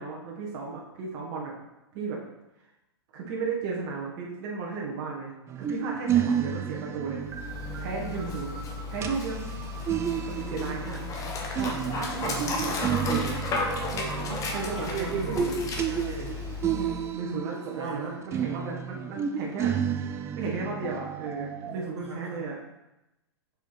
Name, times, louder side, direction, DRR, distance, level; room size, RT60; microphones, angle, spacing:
voice 1, 0.0-1.5 1.9-2.2 3.1-7.2 7.8-8.6 8.9-9.6 10.2-11.0 11.6-13.4 14.5-15.5 16.7-19.8 20.4-22.6, right 4 dB, 45° right, -2 dB, 1.7 m, -34 dB
sound 1, 5.5-17.9 18.2-21.8, right 8 dB, 20° right, 0.4 m, -32 dB
Dog, 7.2-17.2, left 3 dB, 25° left, 1.2 m, -34 dB
voice 2, 7.6-8.2 13.9-16.4 17.3-18.2 21.6-22.5, right 3 dB, 85° right, -2 dB, 1.8 m, -41 dB
6.5 x 5.1 x 4.0 m, 0.94 s
hypercardioid pair, 115°, 14 cm